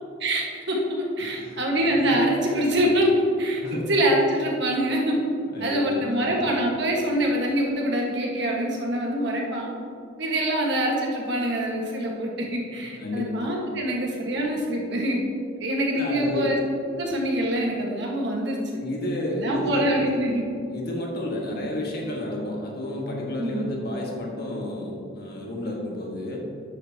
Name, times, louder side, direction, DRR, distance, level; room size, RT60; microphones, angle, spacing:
voice 1, 0.2-3.6 3.9-5.2 5.6-9.7 10.2-15.2 15.6-16.6 17.0-18.6 19.4-20.4 21.5-21.6 23.4-23.8, right 1 dB, 55° right, -1 dB, 1.6 m, -25 dB
voice 2, 1.2-1.6 1.9-2.2 3.6-3.9 5.5-6.4 12.8-13.2 13.8-13.9 15.9-16.5 18.7-20.1 20.7-26.4, left 1 dB, 50° left, -1 dB, 1.7 m, -31 dB
11.5 x 8.9 x 2.9 m, 2.5 s
head